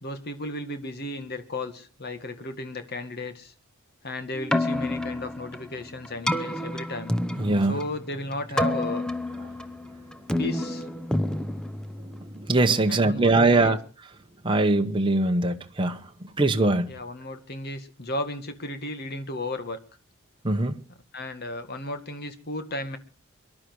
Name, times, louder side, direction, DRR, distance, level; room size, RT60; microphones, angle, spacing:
voice 1, 0.0-3.5 4.0-7.1 7.7-9.0 10.4-10.9 12.9-13.8 16.9-19.8 21.1-23.0, left 1 dB, 50° left, 1.9 m, -34 dB
Keyboard (musical), 4.3-12.5, left 1 dB, 5° left, 0.7 m, -29 dB
voice 2, 7.4-7.8 12.0-13.8 14.4-16.9 20.4-20.8, right 2 dB, 25° right, 1.0 m, -22 dB
23.5 x 11.5 x 4.7 m
head